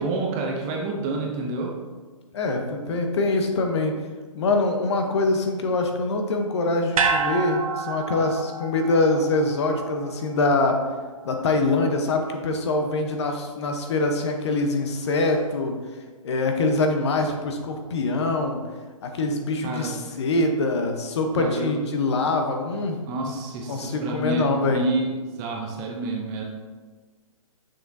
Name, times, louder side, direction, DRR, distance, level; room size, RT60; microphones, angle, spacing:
voice 1, 0.0-1.8 19.6-20.0 21.4-21.8 23.1-26.4, right 2 dB, 20° right, 0 dB, 0.6 m, -28 dB
voice 2, 2.3-4.0 4.3-10.7 11.2-15.7 16.2-18.6 19.0-23.0 23.3-23.4 23.7-24.8, left 2 dB, 50° left, 4 dB, 0.9 m, -24 dB
sound 1, 6.9-11.3 11.6-11.7, right 5 dB, 75° right, 0.9 m, -29 dB
6.8 x 5.9 x 2.7 m, 1.4 s
hypercardioid pair, 155°, 18 cm